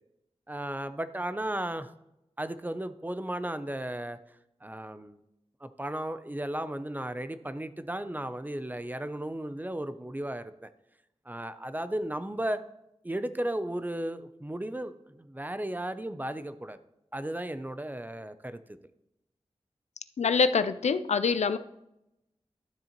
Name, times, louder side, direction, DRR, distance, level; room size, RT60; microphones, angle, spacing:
voice 1, 0.5-1.9 2.4-4.2 4.6-5.2 5.6-10.7 11.3-12.6 13.0-16.8 17.1-18.8, right 1 dB, 15° right, 12 dB, 0.5 m, -35 dB
voice 2, 20.2-21.6, left 5 dB, 90° left, 12 dB, 0.4 m, -25 dB
12.5 x 7.3 x 3.0 m, 0.86 s
wide cardioid pair, 85°, 11 cm